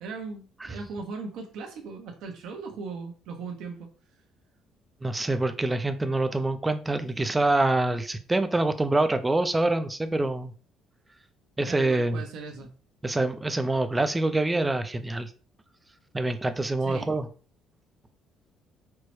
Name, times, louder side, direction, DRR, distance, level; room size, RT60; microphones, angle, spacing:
voice 1, 0.0-3.9 11.7-12.7 16.8-17.1, right 4 dB, 75° right, 3 dB, 0.8 m, -38 dB
voice 2, 5.0-10.5 11.6-12.2 13.0-15.3 16.1-17.3, right 2 dB, 15° right, 10 dB, 0.3 m, -25 dB
4.5 x 2.0 x 3.0 m, 0.39 s
cardioid pair, 115°, 0 cm